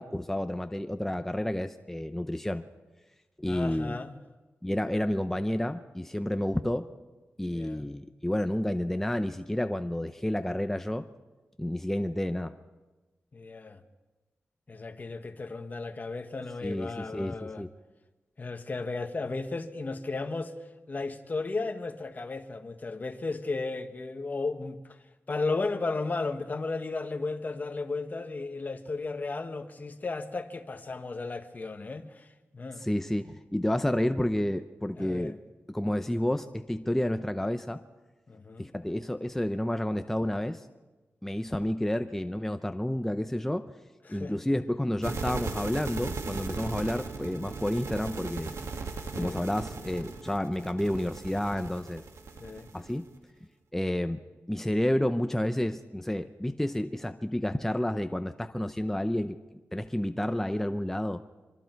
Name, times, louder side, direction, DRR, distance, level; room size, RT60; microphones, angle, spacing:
voice 1, 0.0-2.6 3.4-4.0 4.6-6.9 7.4-11.1 11.6-12.5 16.6-17.7 32.8-35.4 35.7-37.8 38.6-40.6 41.2-43.7 44.1-48.6 49.1-52.0 52.7-53.1 53.7-54.2 54.5-59.4 59.7-61.2, left 1 dB, 5° left, 0.7 m, -30 dB
voice 2, 3.4-4.2 7.5-7.9 13.3-13.8 14.7-17.6 18.4-20.5 20.9-24.8 25.3-32.3 32.5-32.8 35.0-35.3 38.3-38.7 44.0-44.4 49.1-49.4 52.4-52.7, left 3 dB, 35° left, 1.4 m, -34 dB
sound 1, 45.0-53.1, right 4 dB, 80° right, 1.9 m, -38 dB
24.5 x 24.5 x 4.6 m
wide cardioid pair, 130°, 5 cm